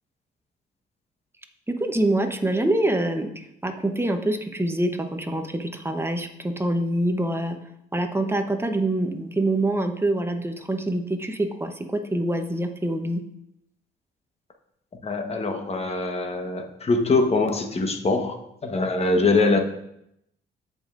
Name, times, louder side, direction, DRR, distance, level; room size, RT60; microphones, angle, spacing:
voice 1, 1.7-7.6 7.9-13.2, right 1 dB, 10° right, 5 dB, 0.9 m, -25 dB
voice 2, 15.0-18.4 18.6-19.6, left 3 dB, 30° left, 4 dB, 1.2 m, -23 dB
14.0 x 5.2 x 2.5 m, 0.78 s
cardioid pair, 90°, 20 cm